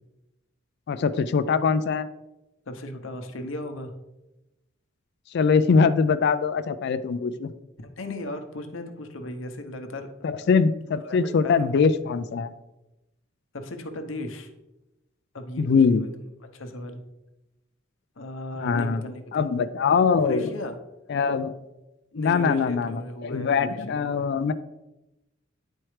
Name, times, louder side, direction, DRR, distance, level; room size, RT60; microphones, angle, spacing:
voice 1, 0.9-2.1 5.3-7.5 10.2-12.5 15.6-16.0 18.6-19.0 19.3-20.5 21.1-21.5 22.2-24.5, left 5 dB, 55° left, 12 dB, 0.4 m, -22 dB
voice 2, 2.7-3.9 8.0-10.3 11.0-11.2 11.4-11.7 13.5-14.5 15.3-15.8 16.5-17.0 18.2-19.5 20.1-20.8 22.1-24.2, left 1 dB, 75° left, 6 dB, 0.9 m, -36 dB
9.9 x 4.4 x 3.2 m, 0.97 s
head